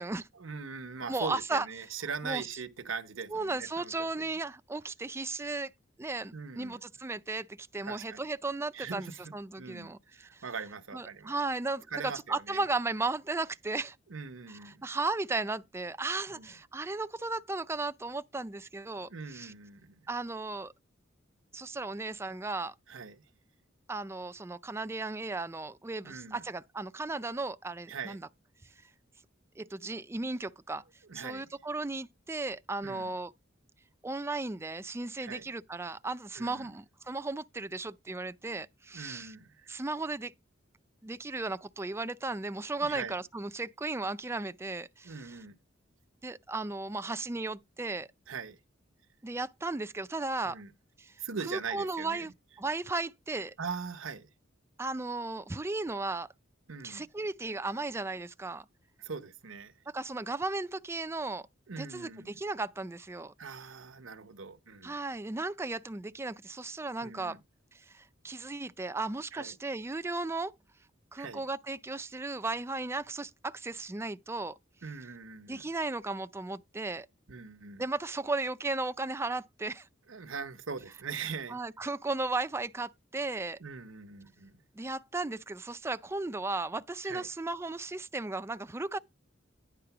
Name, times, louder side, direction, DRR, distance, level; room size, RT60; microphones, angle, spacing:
voice 1, 0.3-3.9 6.3-6.8 7.8-8.2 8.7-11.4 11.9-12.6 14.1-14.8 16.3-16.5 19.1-20.0 22.9-23.2 26.0-26.4 27.9-28.3 31.1-31.5 32.8-33.1 35.2-35.5 36.4-36.7 38.9-39.7 42.8-43.1 45.0-45.5 48.3-48.6 50.4-50.7 51.2-52.3 53.6-54.3 56.7-57.0 59.0-59.7 61.7-62.4 63.4-64.9 67.0-67.4 69.3-69.6 71.2-71.4 74.8-75.7 77.3-77.8 80.1-81.6 83.6-84.6 87.0-87.3, right 5 dB, 85° right, 0.9 m, -41 dB
voice 2, 1.1-1.7 2.2-2.5 3.3-5.7 6.0-10.4 10.9-14.0 14.6-19.5 20.1-20.7 21.5-22.7 23.9-28.2 29.6-30.8 31.1-33.3 34.0-39.3 39.7-40.3 41.0-45.2 46.2-48.1 49.2-50.6 51.0-51.1 51.5-52.3 52.6-53.5 54.8-56.3 56.8-58.7 59.9-61.5 61.8-63.3 64.8-67.4 67.7-70.5 71.1-74.5 75.5-77.1 77.8-79.9 81.5-83.6 84.7-89.0, right 3 dB, 15° right, 0.4 m, -35 dB
10.0 x 3.7 x 5.9 m
head